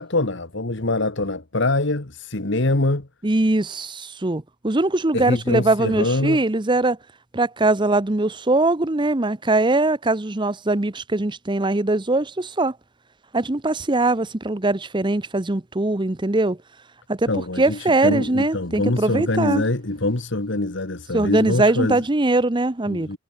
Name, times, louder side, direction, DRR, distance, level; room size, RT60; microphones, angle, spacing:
voice 1, 0.0-3.1 5.1-6.4 17.3-22.0 22.9-23.2, left 2 dB, 60° left, 1.7 m, -24 dB
voice 2, 3.2-7.0 7.3-12.8 13.3-16.6 17.1-17.3 17.6-19.6 21.1-23.2, right 2 dB, 25° right, 0.8 m, -21 dB
head